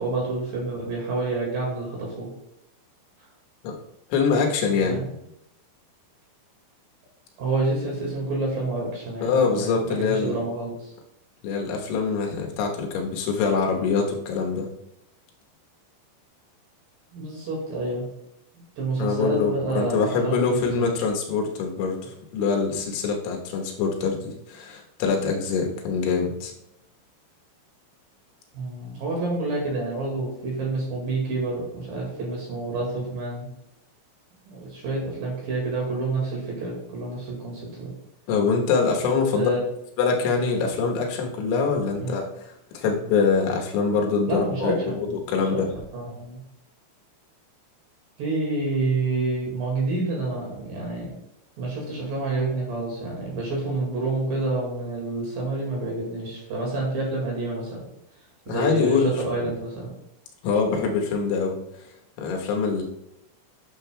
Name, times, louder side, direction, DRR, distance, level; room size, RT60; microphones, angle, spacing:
voice 1, 0.0-2.3 4.8-5.1 7.4-10.9 17.1-18.1 18.8-20.8 28.5-33.5 34.5-37.9 39.4-39.6 42.0-42.2 44.3-45.2 45.5-45.6 45.9-46.4 48.2-51.1 51.6-57.8 58.5-59.9, right 2 dB, 60° right, -2 dB, 3.1 m, -28 dB
voice 2, 4.1-5.0 9.2-10.4 11.4-14.7 19.0-26.5 38.3-39.5 40.0-45.7 58.5-59.1 60.4-61.6 62.2-62.8, left 5 dB, 80° left, 1 dB, 3.5 m, -24 dB
11.5 x 6.6 x 2.2 m, 0.80 s
omnidirectional pair, 5.4 m